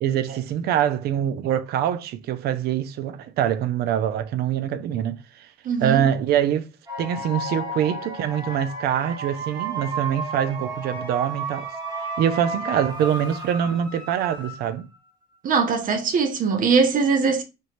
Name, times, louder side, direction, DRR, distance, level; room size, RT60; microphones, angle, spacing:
voice 1, 0.0-5.5 5.8-6.7 7.0-11.7 12.0-14.9, right 10 dB, 70° right, 0.5 m, -24 dB
voice 2, 5.6-6.1 15.4-17.4, right 5 dB, 55° right, 0.9 m, -21 dB
sound 1, 6.9-15.0, right 2 dB, 25° right, 1.8 m, -33 dB
4.3 x 3.1 x 3.1 m
cardioid pair, 110°, 17 cm